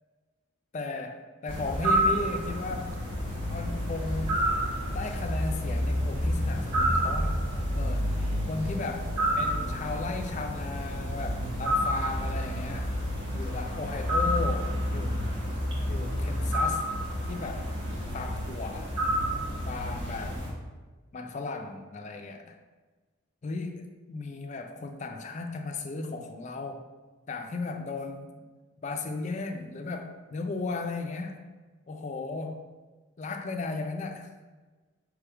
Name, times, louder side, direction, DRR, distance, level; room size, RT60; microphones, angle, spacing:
voice 1, 0.7-3.0 3.5-4.6 4.9-7.4 7.7-8.2 8.5-12.9 13.3-15.2 15.8-16.9 17.3-17.7 18.1-18.9 19.6-20.4 21.1-22.6 23.4-26.9 27.3-28.5 28.8-31.4 31.9-32.7 33.2-34.3, left 3 dB, 35° left, 4 dB, 0.4 m, -36 dB
sound 1, 1.5-20.5, equal, 60° right, 1.2 m, -29 dB
3.4 x 3.3 x 4.7 m, 1.3 s
head